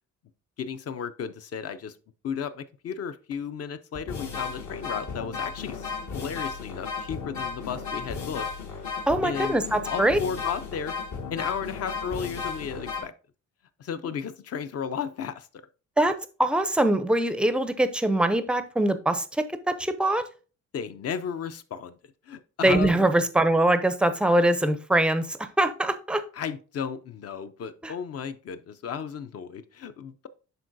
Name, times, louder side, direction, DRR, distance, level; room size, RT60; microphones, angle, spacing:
voice 1, 0.6-2.0 2.2-8.5 8.9-9.0 9.2-9.6 9.8-11.0 11.3-13.1 13.8-15.5 20.7-22.0 22.3-23.1 26.3-30.3, left 7 dB, 55° left, 12 dB, 0.6 m, -34 dB
sound 1, 3.3-3.4 3.9-13.0, left 5 dB, 75° left, 1.9 m, -34 dB
voice 2, 9.1-10.2 16.0-20.2 22.6-26.2 27.8-27.9, right 1 dB, 5° right, 11 dB, 0.4 m, -23 dB
11.0 x 3.8 x 2.6 m, 0.36 s
cardioid pair, 160°, 30 cm